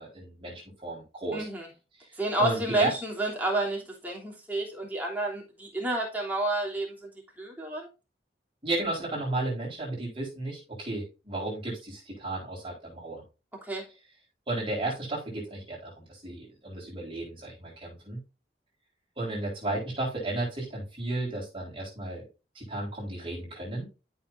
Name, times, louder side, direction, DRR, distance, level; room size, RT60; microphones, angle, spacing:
voice 1, 0.0-1.5 2.0-2.9 8.6-13.2 14.5-18.2 19.2-22.3 22.5-23.9, right 2 dB, 30° right, -4 dB, 4.1 m, -33 dB
voice 2, 1.3-1.7 2.2-7.1 7.4-7.9 13.7-13.8, right 1 dB, 10° right, -2 dB, 3.0 m, -30 dB
13.0 x 5.7 x 2.6 m, 0.29 s
head